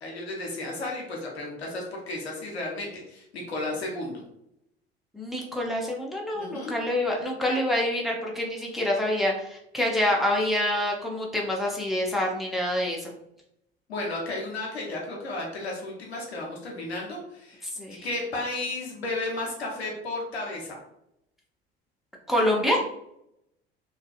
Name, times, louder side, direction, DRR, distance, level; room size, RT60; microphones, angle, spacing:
voice 1, 0.0-4.1 6.3-6.7 13.9-17.6 17.9-20.8, left 2 dB, 85° left, -2 dB, 0.7 m, -33 dB
voice 2, 5.1-13.1 17.8-18.1 22.3-22.8, left 1 dB, ahead, -2 dB, 0.6 m, -26 dB
2.6 x 2.4 x 2.3 m, 0.78 s
figure-of-eight pair, 60°, 31 cm